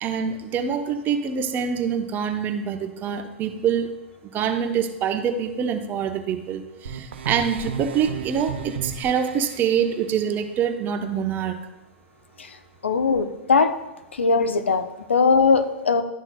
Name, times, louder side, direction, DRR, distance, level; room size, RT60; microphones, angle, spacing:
voice 1, 0.0-3.9 4.3-11.5, right 7 dB, 30° right, 7 dB, 0.8 m, -25 dB
sound 1, 6.8-9.6, right 6 dB, 65° right, 0.7 m, -33 dB
voice 2, 12.8-13.7 14.1-16.0, left 4 dB, 80° left, 9 dB, 0.7 m, -20 dB
12.0 x 6.1 x 2.2 m, 1.0 s
figure-of-eight pair, 100°, 6 cm